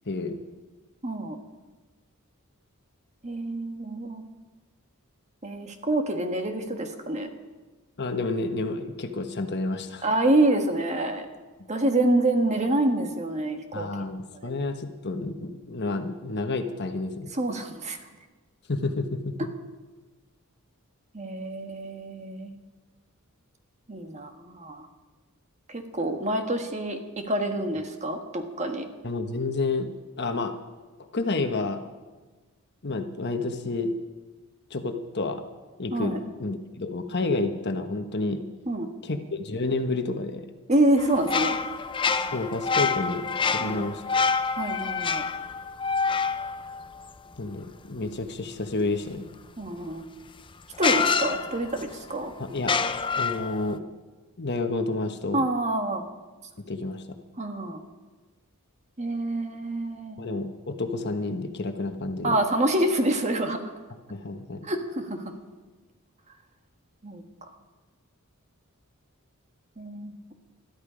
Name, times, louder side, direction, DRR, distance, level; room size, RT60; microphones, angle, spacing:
voice 1, 0.1-0.4 8.0-10.0 13.7-17.3 18.7-19.5 29.0-29.9 30.2-30.5 31.1-31.8 32.8-34.1 34.7-35.4 35.8-38.4 39.0-40.5 42.3-44.0 47.4-49.3 52.4-52.7 53.2-53.8 54.4-55.4 56.7-57.2 60.2-62.4 64.1-64.7, left 3 dB, 50° left, 7 dB, 1.2 m, -30 dB
voice 2, 1.0-1.4 3.2-4.2 5.4-7.3 10.0-11.3 11.7-14.1 14.4-14.5 17.3-18.0 21.1-22.5 23.9-24.9 25.7-28.9 35.9-36.2 38.7-38.9 40.7-41.6 43.6-43.9 44.6-45.2 49.6-50.0 50.8-52.3 55.3-56.0 57.4-57.8 59.0-60.2 62.2-63.6 64.6-65.2 67.0-67.2 69.8-70.1, right 1 dB, 30° right, 5 dB, 1.5 m, -27 dB
sound 1, 41.0-47.6 49.9-50.0 50.8-52.0 52.6-53.7, left 5 dB, 20° left, 0.6 m, -27 dB
21.0 x 13.0 x 5.1 m, 1.3 s
head